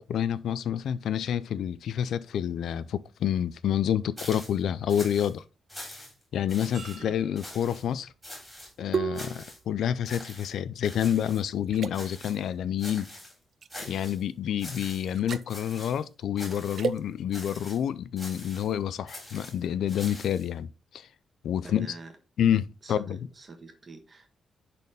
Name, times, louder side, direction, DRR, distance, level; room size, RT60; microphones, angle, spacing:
voice 1, 0.0-5.4 6.3-8.1 8.8-13.1 13.9-21.1 21.4-21.9 22.4-23.2, left 9 dB, 75° left, 0.4 m, -28 dB
sound 1, 4.2-4.6 4.9-5.3 5.7-6.2 6.5-7.0 7.4-7.8 8.2-8.7 9.1-9.6 10.1-10.5 10.8-11.4 11.9-12.5 12.8-13.3 13.7-14.2 14.6-15.2 15.5-16.0 16.4-16.9 17.3-17.8 18.2-18.7 19.1-20.5, left 1 dB, ahead, 3.9 m, -44 dB
sound 2, 6.7-11.2 11.7-11.9 13.6-13.9 15.1-15.5 16.7-17.0, right 6 dB, 45° right, 0.5 m, -35 dB
voice 2, 21.6-22.2 22.8-24.3, right 3 dB, 30° right, 1.3 m, -45 dB
10.5 x 4.2 x 3.5 m
wide cardioid pair, 165°, 0 cm